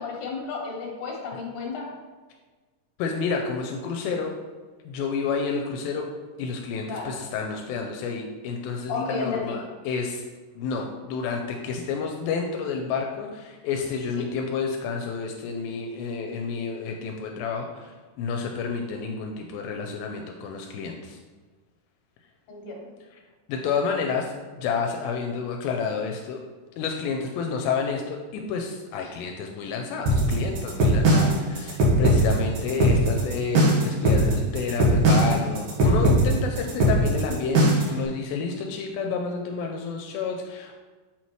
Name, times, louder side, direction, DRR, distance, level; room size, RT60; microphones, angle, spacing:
voice 1, 0.0-1.9 6.9-7.1 8.9-9.6 22.5-22.9 29.0-29.1, left 5 dB, 65° left, -1 dB, 2.6 m, -32 dB
voice 2, 3.0-4.4 4.8-6.1 6.4-10.2 10.6-21.2 23.5-26.4 26.8-40.8, left 5 dB, 85° left, 2 dB, 2.3 m, -30 dB
sound 1, 30.1-38.0, right 1 dB, 65° right, 2.4 m, -19 dB
7.5 x 4.3 x 3.0 m, 1.4 s
omnidirectional pair, 4.1 m